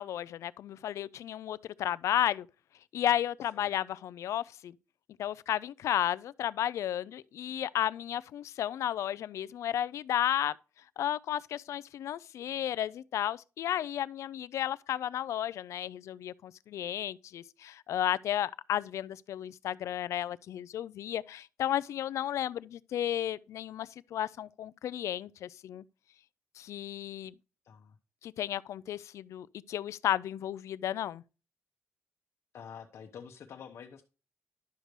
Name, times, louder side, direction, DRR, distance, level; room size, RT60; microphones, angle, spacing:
voice 1, 0.0-2.5 2.9-4.7 5.2-10.5 11.0-25.8 26.6-27.3 28.2-31.2, left 11 dB, 85° left, 0.3 m, -33 dB
voice 2, 27.6-28.0 32.5-34.0, left 7 dB, 65° left, 0.8 m, -48 dB
11.5 x 6.6 x 3.1 m
wide cardioid pair, 145°, 5 cm